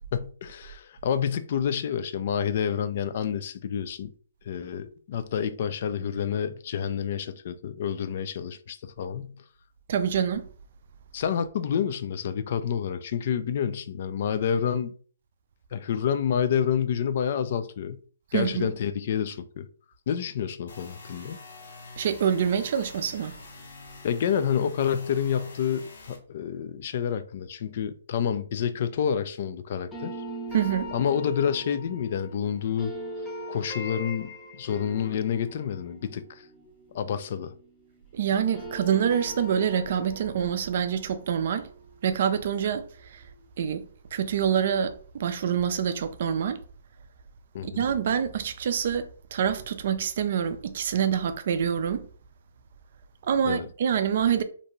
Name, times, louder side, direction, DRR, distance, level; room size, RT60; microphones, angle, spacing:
voice 1, 0.1-4.1 4.5-9.3 11.1-14.9 15.7-18.0 18.3-19.7 20.1-21.4 24.0-30.2 30.9-32.9 33.5-36.5 36.9-37.5 47.5-47.8 53.5-53.7, left 8 dB, 50° left, 0.3 m, -28 dB
voice 2, 9.9-10.4 18.3-18.7 22.0-23.4 30.5-30.9 38.1-41.7 42.0-43.2 43.6-43.9 44.1-46.6 47.6-52.1 53.2-54.4, right 8 dB, 55° right, 0.3 m, -26 dB
sound 1, 20.7-26.2, left 3 dB, 70° left, 0.8 m, -46 dB
sound 2, 29.9-38.0 38.3-43.2, equal, 15° left, 0.7 m, -41 dB
2.6 x 2.2 x 2.9 m
hypercardioid pair, 145°, 0 cm